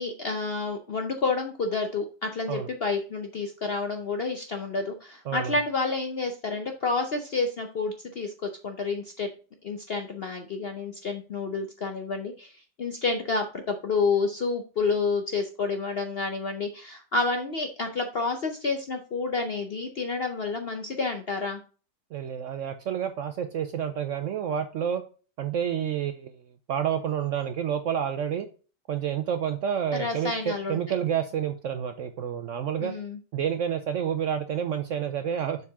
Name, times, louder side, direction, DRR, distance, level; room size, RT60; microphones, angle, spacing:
voice 1, 0.0-9.3 9.6-12.5 12.8-21.6 29.9-30.8 32.8-33.2, left 4 dB, 60° left, 5 dB, 0.6 m, -29 dB
voice 2, 22.1-25.0 25.4-26.3 26.7-28.5 28.9-32.9 33.3-35.6, right 8 dB, 70° right, 8 dB, 0.7 m, -29 dB
7.2 x 4.7 x 3.5 m, 0.37 s
omnidirectional pair, 1.8 m